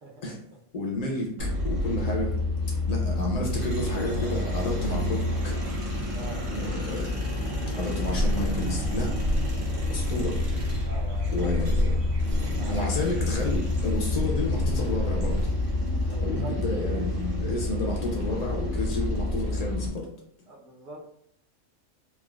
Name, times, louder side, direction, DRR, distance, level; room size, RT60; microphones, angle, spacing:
voice 1, 0.0-0.3 6.1-6.4 10.8-11.5 11.8-12.0 12.4-12.9 15.9-16.6 20.5-21.1, right 1 dB, 65° right, -3 dB, 1.2 m, -44 dB
voice 2, 0.7-2.3 2.9-5.6 6.5-7.0 7.7-9.2 9.9-10.4 11.3-12.0 12.7-15.5 16.2-20.1, left 2 dB, 85° left, -1 dB, 0.3 m, -31 dB
sound 1, 1.4-19.9, left 2 dB, 50° right, 0.7 m, -29 dB
sound 2, 8.0-15.5, equal, 80° right, 1.2 m, -30 dB
3.4 x 2.4 x 2.3 m, 0.67 s
omnidirectional pair, 1.4 m